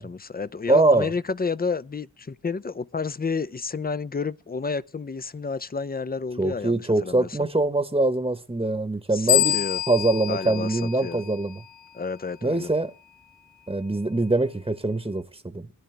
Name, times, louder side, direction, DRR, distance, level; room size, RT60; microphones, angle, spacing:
voice 1, 0.0-7.5 9.1-9.8 10.3-11.2 11.9-12.7, left 4 dB, 25° left, 0.6 m, -30 dB
voice 2, 0.7-1.1 6.4-9.6 9.9-11.6 12.4-12.9 13.7-15.8, right 2 dB, 15° right, 1.1 m, -23 dB
sound 1, 9.3-11.8, left 13 dB, 85° left, 1.5 m, -26 dB
16.5 x 10.0 x 3.4 m
cardioid pair, 60°, 38 cm